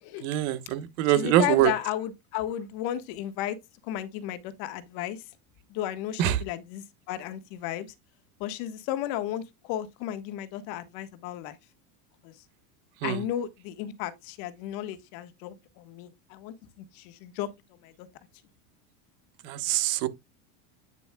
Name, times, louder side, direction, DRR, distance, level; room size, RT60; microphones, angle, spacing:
voice 1, 0.2-1.7 6.2-6.4 13.0-13.2 19.4-20.1, right 13 dB, 65° right, 1.3 m, -24 dB
voice 2, 1.1-3.6 3.8-5.2 5.7-7.9 8.4-11.6 12.2-12.3 13.0-17.5 17.8-18.1, left 12 dB, 55° left, 1.5 m, -34 dB
9.1 x 7.0 x 2.2 m
supercardioid pair, 150°, 44 cm